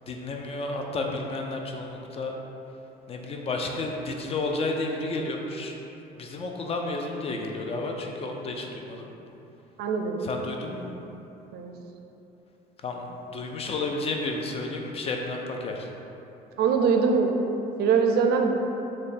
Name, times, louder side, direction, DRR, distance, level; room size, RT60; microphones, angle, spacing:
voice 1, 0.1-2.4 3.1-5.8 6.2-9.1 10.2-10.9 12.8-13.0 13.3-15.9, left 2 dB, 35° left, 1 dB, 0.4 m, -31 dB
voice 2, 9.8-10.3 11.5-11.7 16.6-17.3 17.8-18.5, right 5 dB, 70° right, 3 dB, 0.4 m, -22 dB
3.6 x 2.2 x 4.0 m, 3.0 s
cardioid pair, 110°, 17 cm